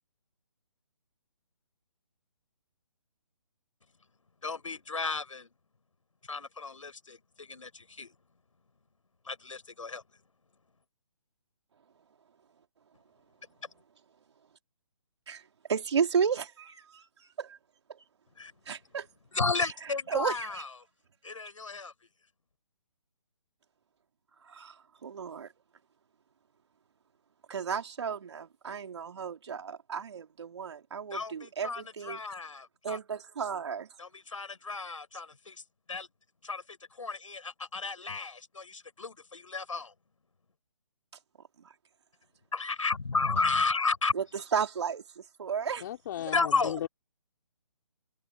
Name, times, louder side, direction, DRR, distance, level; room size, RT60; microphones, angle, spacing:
voice 1, 4.4-5.5 6.2-8.2 9.2-10.0 13.6-13.7 18.3-18.5 19.3-20.7 21.2-21.9 31.1-33.0 34.0-35.6 35.9-36.1 36.4-39.9 42.5-44.1 46.2-46.8, left 4 dB, 80° left, 7.8 m, -33 dB
voice 2, 15.7-17.0 17.4-17.6 18.7-19.1 20.1-20.5 24.5-24.8 25.0-25.5 27.5-32.2 32.8-33.9 41.6-41.7 44.1-44.2 44.5-45.9, right 7 dB, 60° right, 3.7 m, -33 dB
voice 3, 45.8-46.9, left 12 dB, 40° left, 3.4 m, -36 dB
hypercardioid pair, 150°, 16 cm